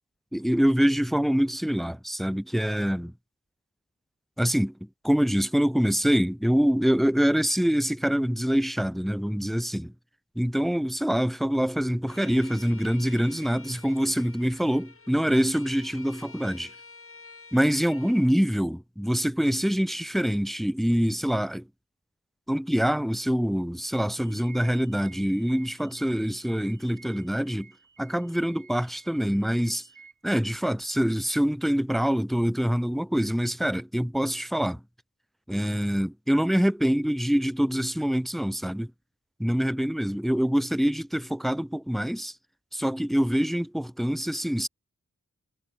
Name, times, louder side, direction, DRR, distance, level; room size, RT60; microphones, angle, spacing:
voice 1, 0.3-3.1 4.4-4.7 5.0-9.9 10.4-16.7 17.5-21.7 22.5-27.7 28.0-29.9 30.2-34.8 35.5-38.9 39.4-42.3 42.7-44.7, equal, ahead, 0.6 m, -25 dB
Bowed string instrument, 12.1-18.3, left 4 dB, 45° left, 2.5 m, -49 dB
sound 1, 24.2-30.1, right 5 dB, 85° right, 4.9 m, -53 dB
wide cardioid pair, 95°, 30 cm